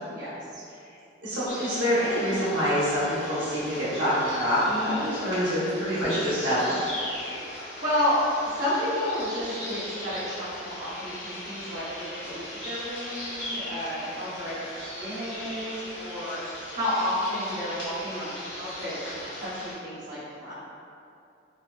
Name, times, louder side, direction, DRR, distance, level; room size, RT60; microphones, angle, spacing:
voice 1, 0.1-0.6 7.5-8.2 8.4-11.8 12.1-20.5, left 1 dB, 45° right, -13 dB, 0.9 m, -31 dB
voice 2, 1.2-6.8, equal, 80° right, -10 dB, 0.9 m, -26 dB
sound 1, 1.5-19.7, left 1 dB, 60° left, 0.9 m, -38 dB
2.8 x 2.1 x 2.3 m, 2.6 s
head